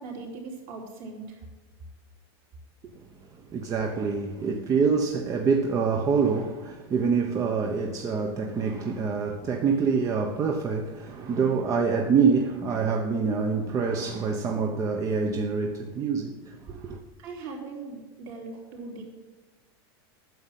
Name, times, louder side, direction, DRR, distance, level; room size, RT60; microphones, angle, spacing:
voice 1, 0.0-1.5 17.2-19.0, right 3 dB, 55° right, 3.6 m, -39 dB
voice 2, 3.5-17.0, right 5 dB, 25° right, 0.8 m, -26 dB
9.3 x 7.3 x 7.4 m
supercardioid pair, 145°, 13 cm